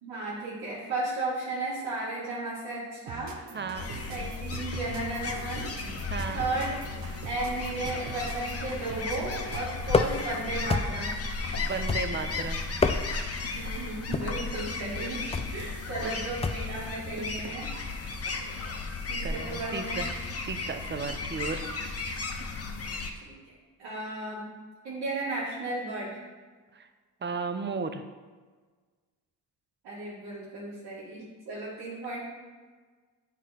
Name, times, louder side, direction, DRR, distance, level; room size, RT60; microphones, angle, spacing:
voice 1, 0.0-3.4 4.1-6.1 6.3-6.7 7.2-11.1 13.5-15.3 15.5-17.7 19.1-20.0 23.2-23.4 23.8-24.5 24.8-26.2 29.8-32.2, right 2 dB, 85° right, -11 dB, 2.1 m, -34 dB
sound 1, 3.1-9.9, right 6 dB, 65° right, 0.8 m, -44 dB
voice 2, 3.5-3.9 6.1-6.7 11.7-12.6 16.0-16.1 19.2-20.1 20.5-21.7 26.7-26.9 27.2-28.0, right 5 dB, 30° right, 8 dB, 0.7 m, -34 dB
sound 2, 3.7-23.1, left 3 dB, 40° left, 0.8 m, -35 dB
sound 3, 9.9-10.3 10.7-11.2 11.9-12.3 12.7-13.3 14.1-14.5 15.3-15.6 16.4-16.8, left 4 dB, 15° left, 0.3 m, -28 dB
8.4 x 3.8 x 4.2 m, 1.4 s
cardioid pair, 65°, 38 cm